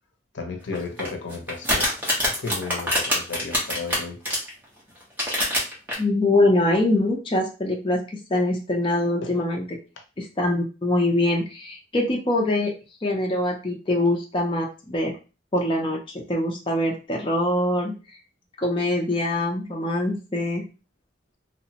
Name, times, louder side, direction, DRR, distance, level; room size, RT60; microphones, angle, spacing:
voice 1, 0.3-2.0 2.2-4.2 9.2-9.4, left 4 dB, 75° left, 0.6 m, -34 dB
sound 1, 0.7-4.5 5.0-5.9, equal, 10° right, 0.8 m, -24 dB
voice 2, 6.0-9.8 10.2-12.7 13.0-15.1 15.5-18.2 18.6-20.7, left 1 dB, 25° left, 0.4 m, -24 dB
2.9 x 2.1 x 2.8 m
head